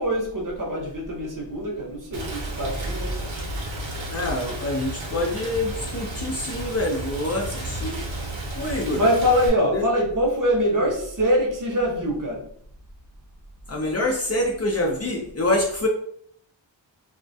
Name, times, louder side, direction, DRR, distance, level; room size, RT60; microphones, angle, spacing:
voice 1, 0.0-3.1 8.9-12.4, equal, 45° right, -1 dB, 0.7 m, -23 dB
Rain, 2.1-9.5, right 1 dB, 80° right, 0.8 m, -32 dB
voice 2, 4.1-8.0 8.6-9.0 9.7-9.8 10.8-10.9 13.7-15.9, left 1 dB, 35° left, -1 dB, 0.4 m, -26 dB
2.2 x 2.1 x 2.6 m, 0.64 s
wide cardioid pair, 105°, 45 cm